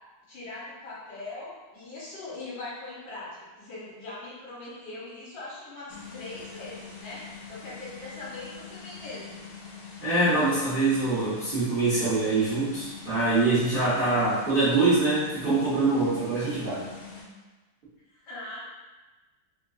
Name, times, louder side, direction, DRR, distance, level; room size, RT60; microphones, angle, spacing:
voice 1, 0.3-3.3 3.6-7.2 7.5-9.4 18.1-18.6, left 2 dB, 60° left, -9 dB, 1.6 m, -41 dB
sound 1, 5.9-17.2, left 5 dB, 85° left, 1.5 m, -44 dB
voice 2, 10.0-16.9, right 3 dB, 85° right, -13 dB, 0.4 m, -24 dB
3.7 x 2.4 x 2.3 m, 1.2 s
omnidirectional pair, 2.3 m